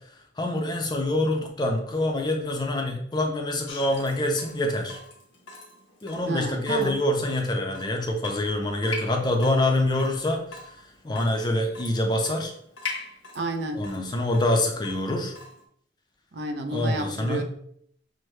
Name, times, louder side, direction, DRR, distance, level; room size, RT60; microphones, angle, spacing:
voice 1, 0.4-5.0 6.0-10.6 11.0-12.5 13.7-15.3 16.7-17.4, left 1 dB, 25° left, 3 dB, 0.5 m, -25 dB
Water tap faucet / Drip, 3.7-15.6, left 3 dB, 90° left, 0.9 m, -42 dB
voice 2, 6.3-7.0 13.3-13.8 16.3-17.4, right 2 dB, 60° right, 6 dB, 0.5 m, -30 dB
6.1 x 2.1 x 3.1 m, 0.66 s
head